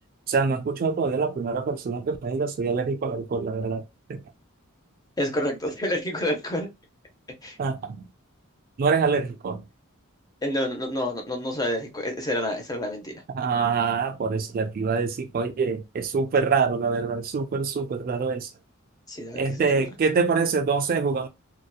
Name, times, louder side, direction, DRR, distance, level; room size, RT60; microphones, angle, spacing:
voice 1, 0.3-3.8 7.6-8.1 8.8-9.6 13.3-18.5 19.4-21.3, right 5 dB, 45° right, 0.3 m, -25 dB
voice 2, 5.2-6.7 7.4-7.6 10.4-13.1 19.1-19.8, left 1 dB, 20° left, 0.6 m, -28 dB
2.7 x 2.1 x 2.2 m
head